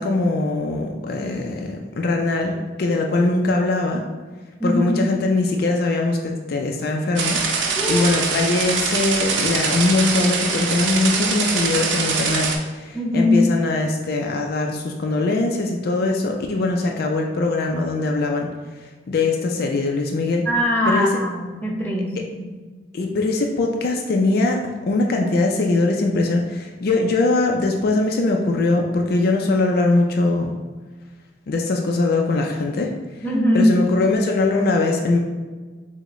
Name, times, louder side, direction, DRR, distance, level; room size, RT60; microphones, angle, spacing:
voice 1, 0.0-4.0 4.6-7.4 7.7-18.5 19.1-20.5 20.9-21.1 22.9-30.5 31.5-32.9 33.5-35.2, left 2 dB, 55° left, 2 dB, 0.4 m, -21 dB
voice 2, 4.6-5.0 7.8-8.1 12.9-13.4 20.4-22.5 33.2-33.8, left 1 dB, 10° left, -3 dB, 0.7 m, -21 dB
sound 1, 7.2-12.6, right 4 dB, 90° right, 0.6 m, -23 dB
5.9 x 2.1 x 3.0 m, 1.4 s
head